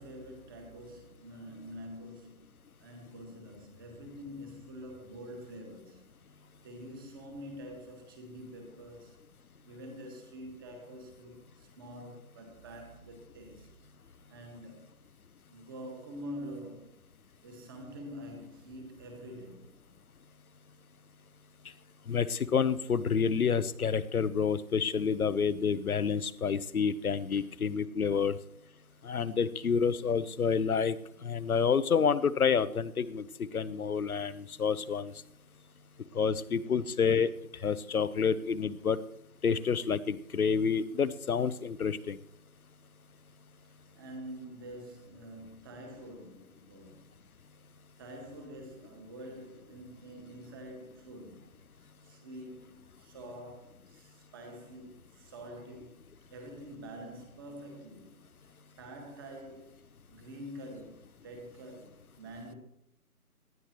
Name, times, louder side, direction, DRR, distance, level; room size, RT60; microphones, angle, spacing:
voice 1, 0.0-2.5 2.8-6.1 6.6-9.2 9.6-13.7 14.3-14.9 15.5-16.9 17.4-19.7 27.3-27.5 28.9-29.0 36.1-36.3 43.6-47.2 48.0-56.0 56.3-58.1 58.8-59.8 60.1-62.5, equal, 15° right, 1.7 m, -46 dB
voice 2, 22.1-28.3 29.0-31.0 31.2-35.1 36.1-37.3 37.6-39.0 39.4-42.2, left 6 dB, 70° left, 0.9 m, -28 dB
19.0 x 12.5 x 3.1 m
figure-of-eight pair, 165°, 44 cm